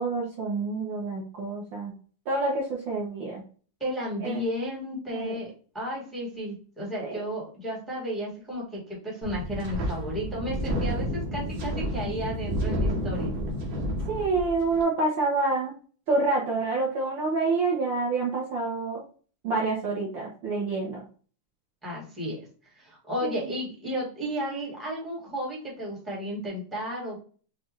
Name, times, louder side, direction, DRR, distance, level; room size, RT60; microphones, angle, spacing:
voice 1, 0.0-1.9 2.3-3.4 4.2-4.4 5.1-5.4 7.0-7.2 14.1-15.7 16.1-19.0 19.4-21.0 23.2-23.4, right 3 dB, 90° right, -2 dB, 1.0 m, -27 dB
voice 2, 3.8-13.3 21.8-22.4 22.7-27.2, equal, ahead, -4 dB, 1.1 m, -33 dB
Wind, 9.2-14.8, equal, 55° right, 1.3 m, -30 dB
5.9 x 2.4 x 3.2 m, 0.41 s
omnidirectional pair, 3.4 m